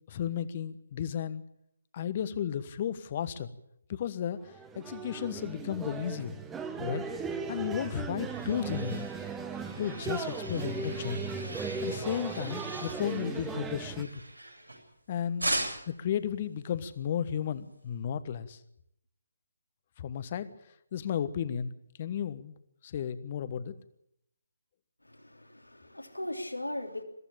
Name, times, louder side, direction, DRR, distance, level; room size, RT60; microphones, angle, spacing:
voice 1, 0.1-1.4 1.9-3.5 3.9-6.4 6.8-7.0 7.5-9.1 9.8-11.2 11.8-14.1 15.1-15.5 15.9-18.6 20.0-20.5 20.9-22.5 22.8-23.7, left 9 dB, 30° left, 14 dB, 1.3 m, -34 dB
sound 1, 4.4-14.0, right 5 dB, 10° right, 1.3 m, -37 dB
sound 2, 8.0-15.0 15.4-16.1, right 1 dB, 80° right, 7.5 m, -39 dB
voice 2, 25.0-27.0, left 1 dB, 85° left, 4 dB, 3.3 m, -38 dB
22.5 x 15.0 x 8.7 m, 0.78 s
figure-of-eight pair, 145°, 0 cm